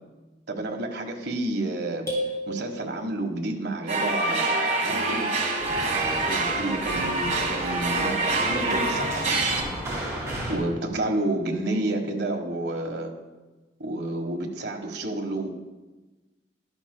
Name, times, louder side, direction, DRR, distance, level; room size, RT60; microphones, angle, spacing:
voice 1, 0.5-2.1 2.5-5.3 6.3-9.5 10.5-13.1 13.8-15.5, right 2 dB, 75° right, 2 dB, 1.3 m, -30 dB
sound 1, 2.1-3.6, equal, 20° left, 2.8 m, -33 dB
sound 2, 3.9-9.6, right 2 dB, 45° right, 1.4 m, -26 dB
sound 3, 5.6-10.6, right 1 dB, 20° right, 2.7 m, -35 dB
12.0 x 11.5 x 2.2 m, 1.2 s
head